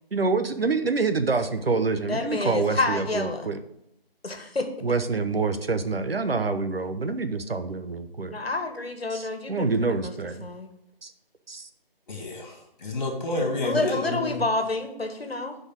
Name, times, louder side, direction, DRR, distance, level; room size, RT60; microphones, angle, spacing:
voice 1, 0.1-3.6 4.8-8.4 9.1-10.5 11.0-11.1 11.5-11.7, right 4 dB, 75° right, 9 dB, 1.0 m, -26 dB
voice 2, 2.1-3.5 4.2-4.7 8.3-10.1 10.4-10.7 13.4-15.5, left 2 dB, 80° left, 5 dB, 1.7 m, -29 dB
voice 3, 12.1-14.4, left 2 dB, 45° left, 1 dB, 3.0 m, -29 dB
9.9 x 5.4 x 4.6 m, 0.79 s
figure-of-eight pair, 165°, 30 cm